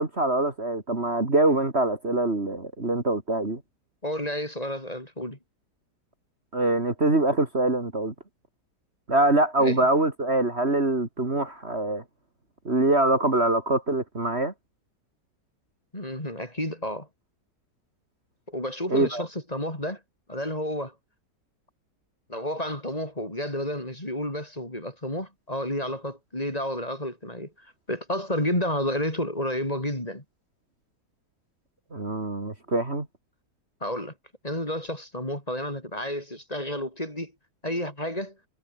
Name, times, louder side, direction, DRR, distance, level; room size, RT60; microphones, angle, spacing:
voice 1, 0.0-3.6 6.5-8.1 9.1-12.0 12.7-14.5 18.9-19.2 31.9-33.1, right 2 dB, 35° right, 3.4 m, -24 dB
voice 2, 4.0-5.4 9.6-9.9 15.9-17.1 18.5-20.0 20.3-20.9 22.3-30.2 33.8-34.1 34.4-37.3 37.6-38.4, left 1 dB, 20° left, 5.6 m, -31 dB
omnidirectional pair, 1.8 m